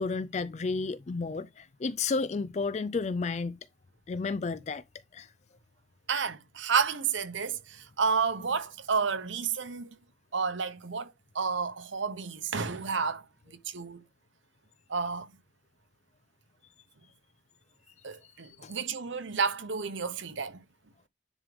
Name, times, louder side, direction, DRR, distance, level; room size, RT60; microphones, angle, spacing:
voice 1, 0.0-3.6 4.1-4.8 5.1-5.3 18.6-18.7, left 4 dB, 35° left, 0.3 m, -32 dB
voice 2, 6.1-9.9 10.3-14.0 14.9-15.3 18.0-20.6, right 5 dB, 85° right, 1.0 m, -31 dB
10.0 x 3.6 x 3.4 m
head